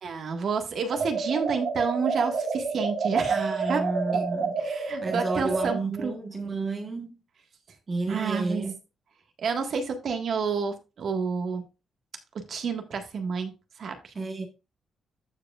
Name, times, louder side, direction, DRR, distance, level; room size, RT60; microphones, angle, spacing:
voice 1, 0.0-4.3 4.6-6.1 8.1-8.6 9.4-11.6 12.5-13.5 13.8-14.1, right 5 dB, 55° right, 1.7 m, -30 dB
sound 1, 0.9-5.8, right 4 dB, 80° right, 2.6 m, -29 dB
voice 2, 3.3-4.6 5.0-7.2 7.9-8.7 14.1-14.5, right 3 dB, 30° right, 1.3 m, -31 dB
14.5 x 4.8 x 2.4 m
cardioid pair, 145°, 0 cm